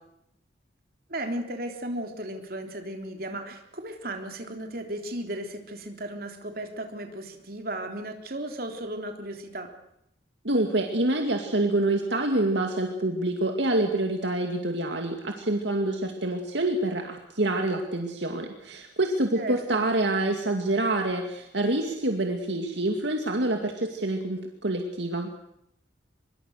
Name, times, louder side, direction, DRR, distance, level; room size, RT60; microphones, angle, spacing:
voice 1, 1.1-9.7 19.4-19.9, right 1 dB, 50° right, 4 dB, 3.5 m, -35 dB
voice 2, 10.4-25.3, right 2 dB, 70° right, 4 dB, 2.3 m, -27 dB
24.5 x 23.0 x 6.5 m, 0.79 s
head